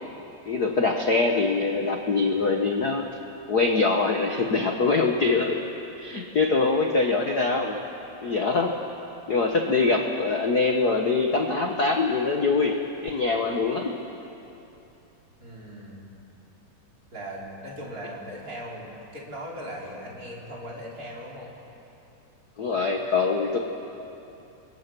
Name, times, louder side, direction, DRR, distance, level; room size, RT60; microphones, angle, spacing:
voice 1, 0.5-3.1 3.5-5.6 6.0-7.8 8.2-8.8 9.3-13.9 22.6-23.6, left 4 dB, 75° left, 2 dB, 0.8 m, -23 dB
voice 2, 2.3-2.6 15.4-16.0 17.1-21.5, equal, 25° right, -3 dB, 3.8 m, -39 dB
28.5 x 22.0 x 6.2 m, 2.9 s
omnidirectional pair, 3.7 m